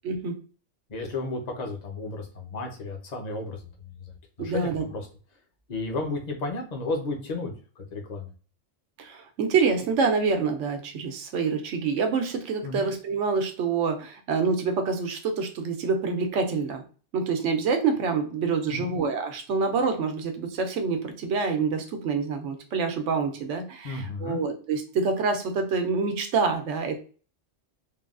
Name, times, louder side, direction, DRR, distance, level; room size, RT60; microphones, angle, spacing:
voice 1, 0.0-0.4 4.4-4.8 9.0-16.8 17.1-27.0, right 5 dB, 85° right, 5 dB, 1.0 m, -26 dB
voice 2, 0.9-3.6 4.0-4.1 4.4-5.1 5.7-8.3 12.6-12.9 18.7-18.9 23.8-24.4, left 2 dB, 45° left, 2 dB, 0.7 m, -33 dB
3.3 x 2.3 x 2.4 m, 0.38 s
omnidirectional pair, 1.2 m